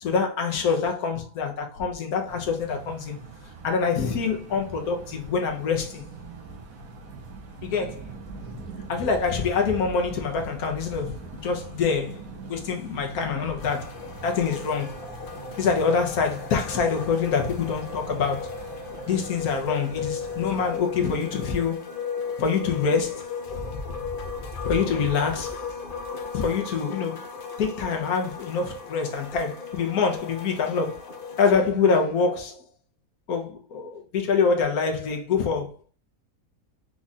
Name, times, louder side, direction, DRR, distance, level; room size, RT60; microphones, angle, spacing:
voice 1, 0.0-3.2 3.6-6.0 7.6-8.0 8.9-11.2 11.4-13.9 14.2-15.0 15.6-18.6 19.1-22.0 22.4-23.3 23.7-23.8 24.6-25.6 26.3-27.2 27.6-31.0 31.4-32.6 33.3-35.9, left 5 dB, 85° left, 1.4 m, -25 dB
sound 1, 2.3-20.8, right 4 dB, 75° right, 1.4 m, -43 dB
sound 2, 13.6-31.5, left 5 dB, 50° left, 0.7 m, -36 dB
4.8 x 2.5 x 4.0 m
omnidirectional pair, 1.5 m